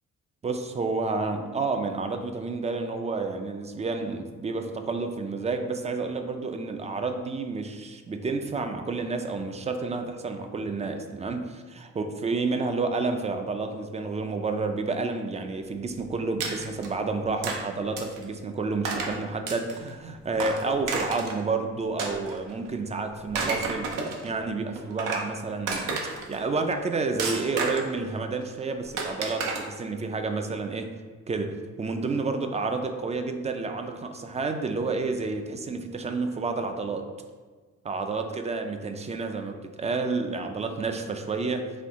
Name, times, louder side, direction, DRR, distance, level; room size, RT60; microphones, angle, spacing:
voice 1, 0.4-23.9 24.2-25.9 26.3-30.9 31.3-37.1 37.8-41.7, right 3 dB, 25° right, 6 dB, 0.4 m, -30 dB
sound 1, 16.4-16.9 17.4-17.6 18.0-18.2 18.8-19.2 19.5-19.9 20.4-21.4 22.0-22.7 23.2-24.3 24.8-25.3 25.7-26.4 27.2-28.0 29.0-29.6, right 4 dB, 85° right, 0.7 m, -31 dB
4.4 x 2.7 x 3.6 m, 1.4 s
cardioid pair, 90°, 30 cm